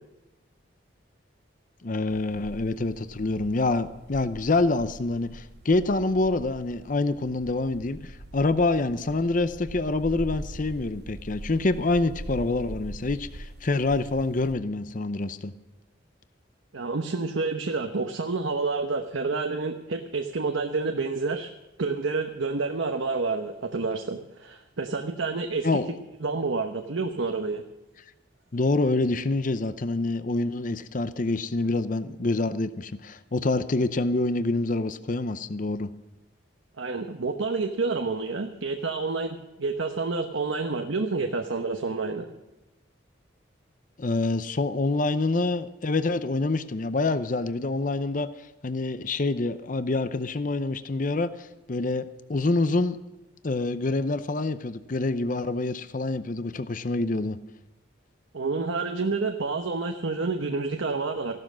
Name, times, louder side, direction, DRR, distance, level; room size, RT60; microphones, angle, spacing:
voice 1, 1.8-15.5 25.6-25.9 28.5-35.9 44.0-48.3 48.6-53.0 53.4-57.4, left 2 dB, 45° left, 13 dB, 0.6 m, -26 dB
sound 1, 2.1-14.5, right 1 dB, 55° right, 0.8 m, -43 dB
voice 2, 16.7-21.5 21.8-25.8 26.2-27.6 36.8-42.3 58.3-61.4, right 3 dB, 85° right, 5 dB, 1.0 m, -29 dB
15.5 x 12.0 x 6.2 m, 1.0 s
head